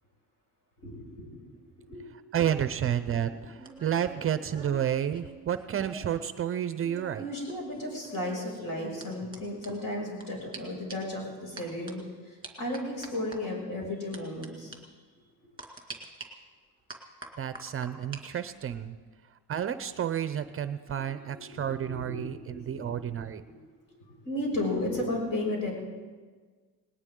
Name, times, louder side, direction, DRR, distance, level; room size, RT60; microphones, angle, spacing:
voice 1, 0.8-1.4 1.9-2.0 3.3-3.4 6.0-6.1 7.2-14.7 20.9-23.0 23.5-23.6 24.2-25.7, left 1 dB, 60° left, -1 dB, 6.4 m, -34 dB
voice 2, 2.3-7.2 17.4-19.0 19.5-23.4, right 9 dB, 35° right, 12 dB, 0.5 m, -31 dB
sound 1, 3.0-6.3 6.5-10.2 10.5-10.6 10.9-11.2 11.6-11.9 12.4-13.4 14.1-14.5 14.7-14.8 15.6-16.3 16.9-18.2 18.5-18.9, right 3 dB, 10° right, 2.1 m, -46 dB
19.5 x 19.0 x 3.7 m, 1.5 s
cardioid pair, 150°, 38 cm